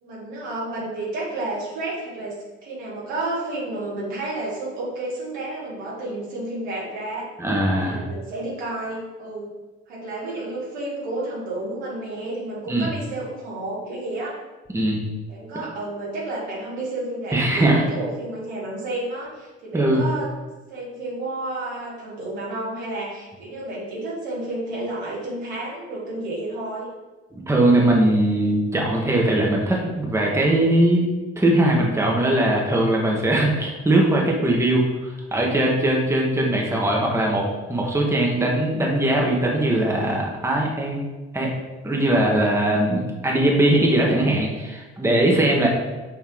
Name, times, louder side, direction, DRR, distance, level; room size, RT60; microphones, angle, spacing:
voice 1, 0.0-2.4 2.6-7.3 7.8-9.5 9.9-14.3 15.3-20.3 20.7-26.9, right 2 dB, 65° right, -5 dB, 2.0 m, -31 dB
voice 2, 7.4-8.0 12.7-12.9 14.7-15.0 17.3-17.8 19.7-20.0 27.3-31.0 31.4-41.0 41.3-41.5 41.8-45.7, right 1 dB, 10° right, -2 dB, 1.2 m, -20 dB
5.9 x 3.5 x 4.8 m, 1.2 s
figure-of-eight pair, 50°, 35 cm